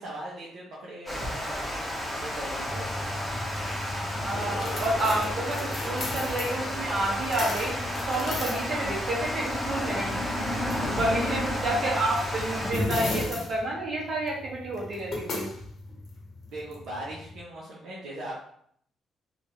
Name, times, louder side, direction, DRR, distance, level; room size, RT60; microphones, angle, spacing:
voice 1, 0.0-2.9 11.0-11.4 16.5-18.4, right 1 dB, 75° right, -6 dB, 0.7 m, -39 dB
Water, 1.1-12.7, left 1 dB, ahead, 0.8 m, -32 dB
sound 1, 2.7-17.4, left 2 dB, 55° left, 0.8 m, -36 dB
voice 2, 4.1-7.8 8.1-10.2 10.8-15.5, right 1 dB, 55° right, -4 dB, 1.2 m, -29 dB
sound 2, 4.3-11.5, left 2 dB, 85° left, 0.8 m, -45 dB
2.9 x 2.4 x 2.8 m, 0.66 s
cardioid pair, 90°, 0 cm